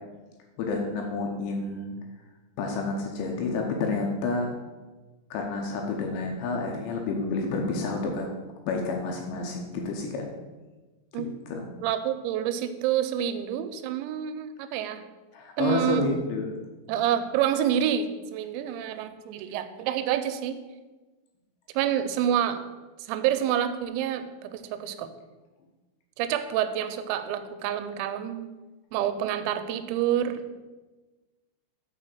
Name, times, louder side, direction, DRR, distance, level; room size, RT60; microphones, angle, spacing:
voice 1, 0.6-2.0 2.6-4.5 5.3-8.3 8.7-10.3 11.2-11.7 15.3-16.5, left 3 dB, 75° left, 1 dB, 2.9 m, -29 dB
voice 2, 11.8-15.0 15.6-16.1 16.9-20.6 21.8-22.6 23.1-25.1 26.2-28.5 28.9-30.4, right 10 dB, 90° right, 10 dB, 3.4 m, -28 dB
6.8 x 6.3 x 6.7 m, 1.2 s
omnidirectional pair, 6.0 m